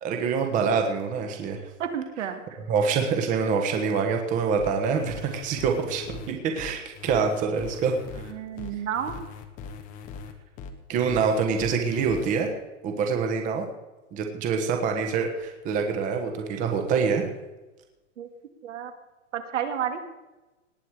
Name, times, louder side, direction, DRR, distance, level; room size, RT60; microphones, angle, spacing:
voice 1, 0.0-1.6 2.7-7.9 10.9-12.5 12.8-13.7 14.1-17.2, right 5 dB, 20° right, 4 dB, 1.3 m, -25 dB
voice 2, 1.8-2.6 8.2-9.2 18.2-18.3 18.6-18.9 19.3-20.0, right 8 dB, 70° right, 7 dB, 2.1 m, -31 dB
sound 1, 4.6-12.3, left 5 dB, 20° left, 1.1 m, -40 dB
19.0 x 8.6 x 4.8 m, 1.1 s
hypercardioid pair, 160°, 38 cm